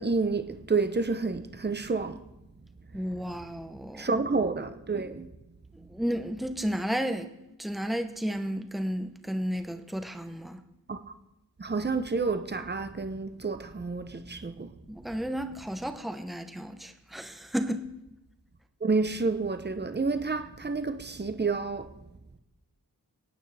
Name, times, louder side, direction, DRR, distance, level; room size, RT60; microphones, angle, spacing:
voice 1, 0.0-2.2 4.0-5.3 10.9-11.0 11.6-14.7 18.8-21.9, right 4 dB, 30° right, 0.8 m, -29 dB
voice 2, 2.9-4.2 5.9-7.3 7.6-10.6 14.9-17.9, equal, ahead, 0.9 m, -32 dB
27.5 x 9.2 x 3.4 m
wide cardioid pair, 90°, 37 cm